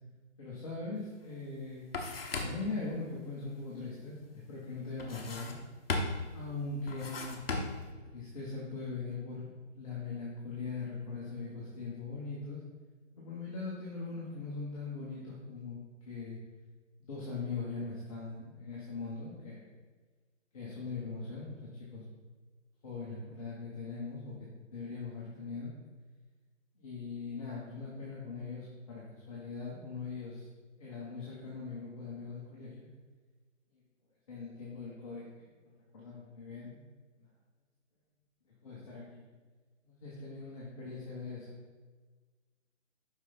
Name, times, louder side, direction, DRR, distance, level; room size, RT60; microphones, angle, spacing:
voice 1, 0.4-1.8 2.4-5.6 6.3-9.5 9.7-12.6 13.1-15.8 16.0-16.4 17.0-19.6 20.5-22.0 22.8-25.7 26.8-30.5 30.8-32.9 34.3-36.8 38.6-39.3 39.8-41.6, left 4 dB, 30° left, -6 dB, 1.3 m, -41 dB
sound 1, 1.1-1.2 1.5-2.8 5.0-5.6 5.9-6.4 6.9-7.9, left 3 dB, 50° left, 1.2 m, -36 dB
5.9 x 5.5 x 4.1 m, 1.4 s
figure-of-eight pair, 160°, 37 cm